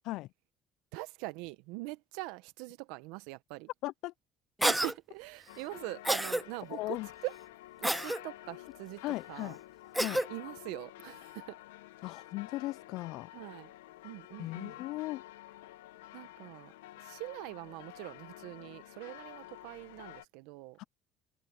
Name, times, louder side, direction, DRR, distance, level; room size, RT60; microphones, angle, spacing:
voice 1, 0.9-3.7 4.6-7.0 7.2-7.3 7.8-9.0 9.3-9.6 10.3-11.6 13.3-13.7 14.0-14.7 16.1-16.7 17.0-20.8, right 22 dB, 80° right, 1.2 m, -43 dB
voice 2, 3.8-4.1 6.7-7.1 9.0-9.6 10.0-10.2 12.0-13.3 14.4-15.2 20.8-20.9, left 18 dB, 70° left, 0.4 m, -37 dB
Cough, 4.6-4.9 6.0-6.4 7.8-8.2 9.9-10.3, right 1 dB, 5° right, 0.4 m, -29 dB
sound 1, 5.5-20.2, left 15 dB, 85° left, 1.3 m, -50 dB
hypercardioid pair, 65°, 0 cm